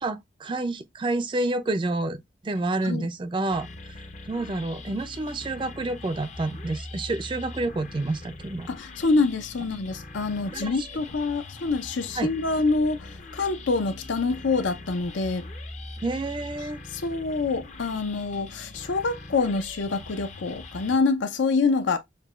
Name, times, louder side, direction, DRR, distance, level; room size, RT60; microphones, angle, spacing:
voice 1, 0.0-3.7 4.3-8.7 10.5-10.7 12.2-12.3 16.0-16.8, right 2 dB, 25° right, 0.3 m, -29 dB
sound 1, 3.5-21.0, left 2 dB, 40° left, 0.5 m, -42 dB
voice 2, 8.7-15.5 16.9-22.0, left 3 dB, 85° left, 0.6 m, -26 dB
6.5 x 2.2 x 2.4 m
head